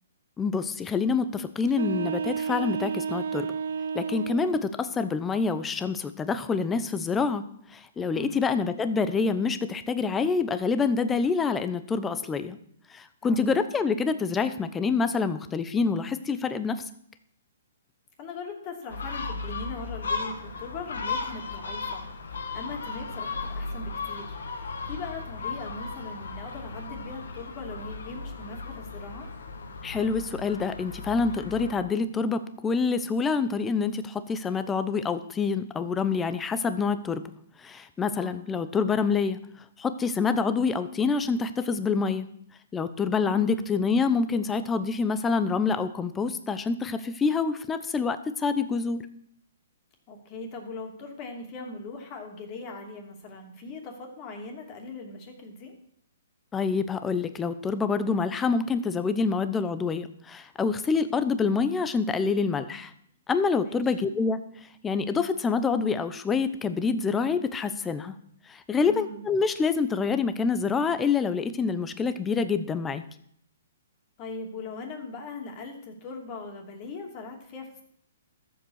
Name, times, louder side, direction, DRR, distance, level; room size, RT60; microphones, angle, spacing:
voice 1, 0.4-3.5 3.9-7.4 7.7-12.6 12.9-16.8 29.8-37.2 37.6-39.4 39.8-42.3 42.7-49.0 56.5-62.9 63.3-64.4 64.8-68.1 68.5-73.0, left 5 dB, 10° left, 11 dB, 0.8 m, -26 dB
sound 1, 1.7-4.7, right 6 dB, 75° right, 0.6 m, -31 dB
voice 2, 8.1-8.5 13.2-13.4 18.2-22.0 22.3-29.3 38.2-38.4 43.2-43.6 50.1-55.7 63.6-63.8 68.8-69.2 74.2-77.8, left 3 dB, 30° left, 2 dB, 2.7 m, -40 dB
Gull seagull, 18.9-31.7, left 4 dB, 80° left, 2.1 m, -36 dB
13.5 x 7.7 x 6.5 m, 0.67 s
hypercardioid pair, 155°, 0 cm